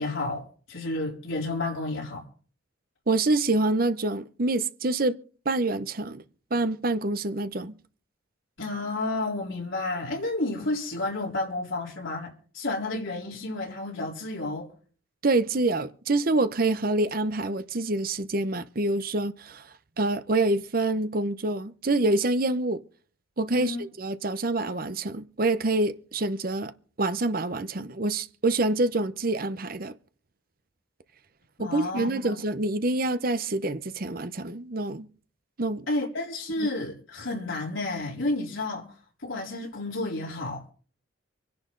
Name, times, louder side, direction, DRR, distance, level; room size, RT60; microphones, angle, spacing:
voice 1, 0.0-2.2 8.6-14.7 23.5-23.8 31.6-32.4 35.9-38.9 39.2-40.6, left 2 dB, 80° left, 3.8 m, -31 dB
voice 2, 3.1-5.2 5.4-6.2 6.5-7.8 15.2-19.6 20.0-22.8 23.4-26.7 27.0-29.9 31.6-35.1 35.6-35.9 36.6-36.7, right 2 dB, 45° right, 0.8 m, -26 dB
25.5 x 10.5 x 3.9 m
head